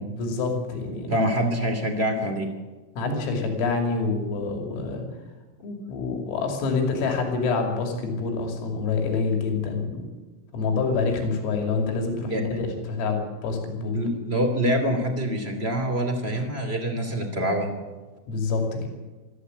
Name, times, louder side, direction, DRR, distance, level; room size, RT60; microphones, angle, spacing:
voice 1, 0.2-1.1 3.0-5.0 5.6-10.1 10.5-14.0 18.3-18.9, left 4 dB, 80° left, 2 dB, 5.5 m, -27 dB
voice 2, 1.1-2.5 12.3-12.4 13.9-17.7, equal, 25° right, 4 dB, 1.4 m, -25 dB
25.5 x 13.5 x 8.1 m, 1.2 s
omnidirectional pair, 5.9 m